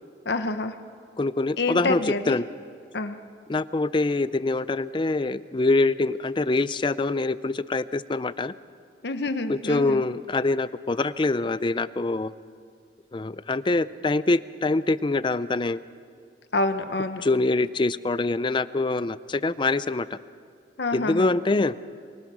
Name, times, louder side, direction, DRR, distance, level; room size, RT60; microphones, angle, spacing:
voice 1, 0.2-0.8 1.6-2.4 2.9-3.2 9.0-10.0 16.5-17.2 20.8-21.4, left 2 dB, 70° left, 8 dB, 0.9 m, -27 dB
voice 2, 1.2-2.0 2.3-2.4 3.5-8.5 9.5-12.3 13.1-15.8 17.2-20.2 20.9-21.7, left 2 dB, 25° left, 15 dB, 0.5 m, -24 dB
24.0 x 19.0 x 6.2 m, 2.2 s
head